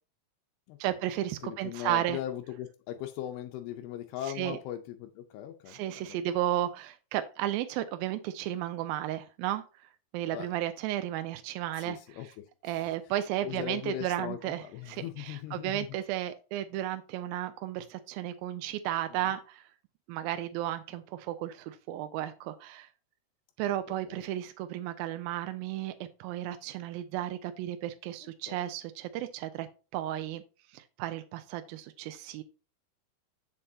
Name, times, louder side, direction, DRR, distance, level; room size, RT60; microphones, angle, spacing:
voice 1, 0.8-2.2 4.4-4.6 5.7-9.6 10.1-12.0 12.6-19.6 20.1-22.9 23.6-25.9 26.2-29.7 29.9-30.4 30.7-32.4, right 13 dB, 80° right, 9 dB, 2.2 m, -33 dB
voice 2, 1.4-6.2 10.3-10.5 11.7-13.0 13.4-16.0 19.1-19.4 23.7-24.2 28.2-28.6, left 11 dB, 90° left, 5 dB, 2.7 m, -40 dB
7.4 x 6.7 x 2.7 m, 0.33 s
omnidirectional pair, 4.5 m